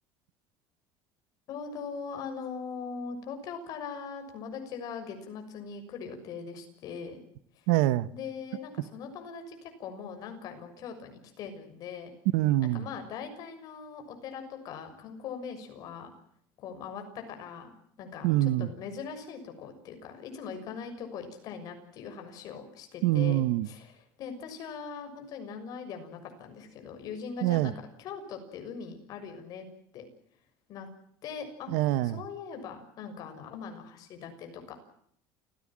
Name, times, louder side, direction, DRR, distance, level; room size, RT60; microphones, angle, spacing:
voice 1, 1.5-7.2 7.5-7.7 8.1-12.1 12.7-16.1 16.6-17.7 18.0-23.9 24.2-27.7 28.0-29.7 29.9-30.1 30.7-30.9 31.2-31.7 32.0-34.8, left 6 dB, 45° left, 6.5 m, -41 dB
voice 2, 7.7-8.1 12.3-12.8 18.2-18.7 23.0-23.7 27.4-27.7 31.7-32.2, right 15 dB, 85° right, 1.1 m, -25 dB
29.0 x 17.0 x 7.5 m
cardioid pair, 160°, 9 cm